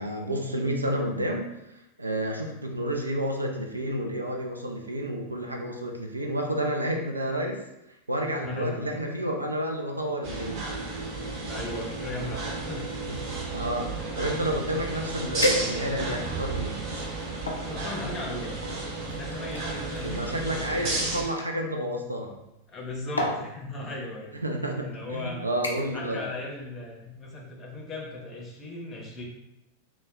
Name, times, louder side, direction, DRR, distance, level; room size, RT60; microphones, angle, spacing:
voice 1, 0.0-1.5 2.0-7.6 7.9-10.7 13.1-13.2 13.5-16.8 20.0-22.4 24.4-26.2, right 1 dB, 80° right, 1 dB, 0.3 m, -30 dB
voice 2, 8.4-9.0 11.4-12.9 14.4-14.5 17.5-18.6 19.0-21.0 22.7-24.4 24.8-25.4 25.9-29.2, left 2 dB, 25° left, -1 dB, 0.7 m, -37 dB
sound 1, 10.2-21.2, right 3 dB, 50° right, 0.7 m, -33 dB
sound 2, 15.4-16.2 16.8-17.7 18.6-21.5 22.6-22.8 23.2-23.5 24.4-24.5 24.9-25.2 25.6-26.0 26.4-26.7 27.1-27.2, left 1 dB, 75° left, 0.4 m, -32 dB
2.2 x 2.1 x 3.5 m, 0.88 s
figure-of-eight pair, 90°, 0 cm